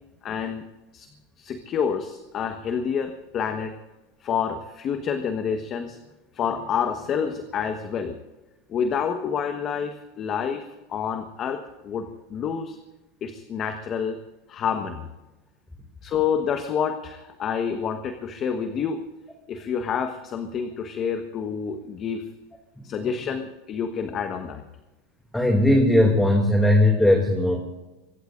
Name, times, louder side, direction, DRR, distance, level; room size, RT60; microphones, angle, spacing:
voice 1, 0.2-0.6 0.9-1.1 1.4-3.7 4.2-6.0 6.3-8.2 8.7-12.8 13.2-14.2 14.5-15.1 16.0-19.0 19.5-22.3 22.8-24.6, left 7 dB, 40° left, 7 dB, 1.4 m, -28 dB
voice 2, 25.3-27.6, left 1 dB, 5° left, 2 dB, 2.6 m, -19 dB
24.0 x 21.5 x 2.6 m, 1.1 s
supercardioid pair, 115°, 0 cm